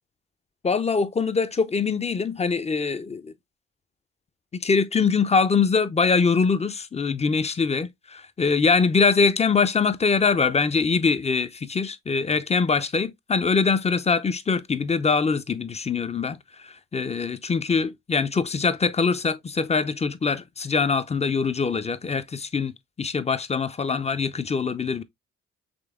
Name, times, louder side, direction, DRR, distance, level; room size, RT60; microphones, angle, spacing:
voice 1, 0.6-3.3 4.5-25.0, left 5 dB, 20° left, 0.5 m, -23 dB
5.1 x 3.3 x 2.3 m
hypercardioid pair, 45°, 36 cm